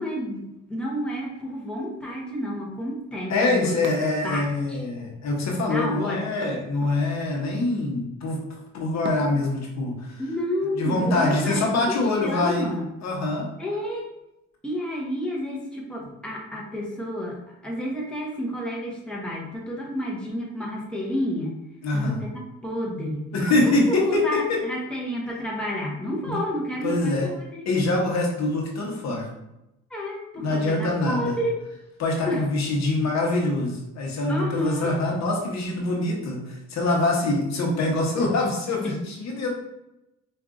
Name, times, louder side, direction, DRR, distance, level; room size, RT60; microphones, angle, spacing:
voice 1, 0.0-3.8 4.2-4.8 5.6-6.3 10.2-12.9 13.6-14.1 14.6-21.6 21.9-23.2 23.9-27.6 29.9-31.6 32.3-32.5 34.3-34.9 38.8-39.0, equal, 5° left, -3 dB, 0.9 m, -30 dB
voice 2, 3.3-8.4 8.7-10.2 10.8-12.8 13.0-13.5 21.8-22.2 23.3-24.6 26.3-26.4 26.8-27.3 27.7-29.3 30.4-31.4 32.0-39.5, left 2 dB, 65° left, 0 dB, 0.9 m, -24 dB
sound 1, 3.8-4.8 6.4-7.4 9.0-9.7 11.3-11.9, right 3 dB, 40° right, 0.6 m, -40 dB
4.6 x 2.5 x 2.5 m, 0.89 s
cardioid pair, 90°, 30 cm